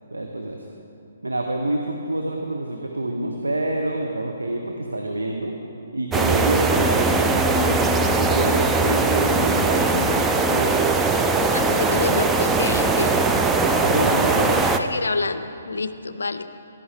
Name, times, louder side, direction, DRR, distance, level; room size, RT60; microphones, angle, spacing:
voice 1, 0.1-0.6 1.2-5.5 5.9-10.8 13.8-14.6, right 1 dB, 90° right, 2 dB, 0.7 m, -27 dB
sound 1, 6.1-14.8, right 3 dB, 10° right, 0.4 m, -20 dB
voice 2, 11.5-13.3 14.6-16.5, left 3 dB, 80° left, 11 dB, 0.4 m, -28 dB
11.5 x 9.8 x 3.3 m, 2.7 s
figure-of-eight pair, 135°, 0 cm